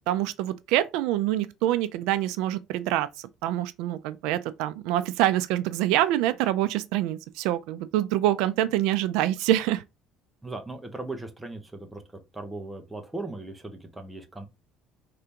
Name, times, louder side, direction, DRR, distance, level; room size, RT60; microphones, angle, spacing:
voice 1, 0.1-9.8, right 13 dB, 80° right, 0.4 m, -26 dB
voice 2, 10.4-12.0 12.3-14.5, right 2 dB, 10° right, 0.9 m, -38 dB
4.9 x 3.4 x 2.9 m
cardioid pair, 140°, 0 cm